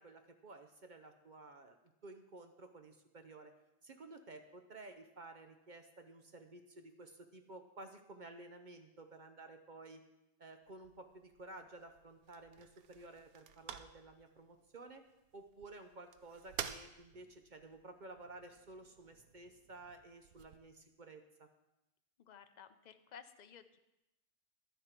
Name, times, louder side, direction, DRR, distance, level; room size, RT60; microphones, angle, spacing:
voice 1, 0.0-1.8 2.0-3.5 3.8-10.0 10.4-15.0 15.3-21.5, right 2 dB, 45° right, 6 dB, 0.7 m, -54 dB
sound 1, 10.6-20.6, right 9 dB, 90° right, 1.1 m, -52 dB
voice 2, 22.2-23.8, left 8 dB, 60° left, 9 dB, 0.4 m, -56 dB
11.5 x 10.0 x 4.4 m, 0.93 s
omnidirectional pair, 1.5 m